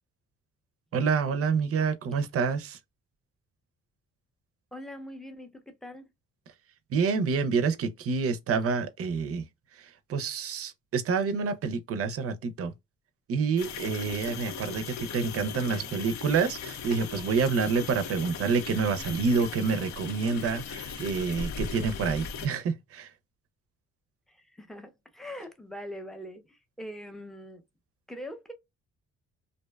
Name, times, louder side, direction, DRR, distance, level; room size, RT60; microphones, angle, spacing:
voice 1, 0.9-2.8 6.9-9.5 9.8-12.7 13.3-23.1, right 5 dB, 50° right, 0.5 m, -28 dB
voice 2, 4.7-6.1 15.7-15.9 24.3-27.6 28.1-28.5, equal, ahead, 0.5 m, -43 dB
sound 1, 13.6-22.5, left 6 dB, 70° left, 0.5 m, -38 dB
2.6 x 2.1 x 2.2 m
cardioid pair, 90°, 30 cm